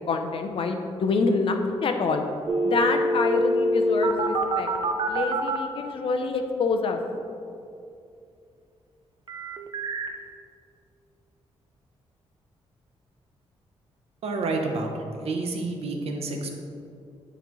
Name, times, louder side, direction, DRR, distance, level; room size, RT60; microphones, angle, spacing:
voice 1, 0.0-2.2 2.6-4.7 5.1-7.0, left 4 dB, 55° left, 5 dB, 0.6 m, -26 dB
sound 1, 2.5-5.6 9.3-10.1, right 1 dB, 40° right, 0.5 m, -25 dB
voice 2, 14.2-14.9 15.2-16.5, right 3 dB, 70° right, 3 dB, 0.8 m, -29 dB
9.2 x 4.0 x 3.0 m, 2.5 s
cardioid pair, 110°, 11 cm